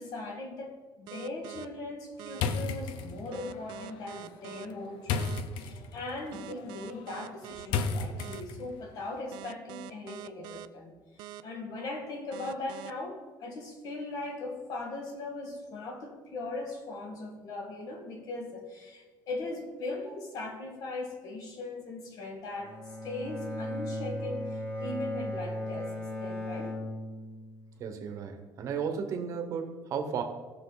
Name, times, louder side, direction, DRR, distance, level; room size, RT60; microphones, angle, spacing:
voice 1, 0.0-26.8, left 2 dB, 50° left, 2 dB, 1.9 m, -39 dB
sound 1, 1.1-1.6 2.2-2.4 3.3-4.7 5.2-5.4 6.3-7.7 8.2-8.4 9.3-10.7 11.2-11.4 12.3-12.9, right 15 dB, 75° right, 0.4 m, -44 dB
sound 2, 2.3-8.8, left 5 dB, 90° left, 0.8 m, -35 dB
Bowed string instrument, 22.6-27.8, left 1 dB, 30° left, 2.2 m, -37 dB
voice 2, 27.8-30.2, right 6 dB, 45° right, 5 dB, 1.1 m, -34 dB
15.5 x 6.4 x 4.0 m, 1.3 s
cardioid pair, 175°, 8 cm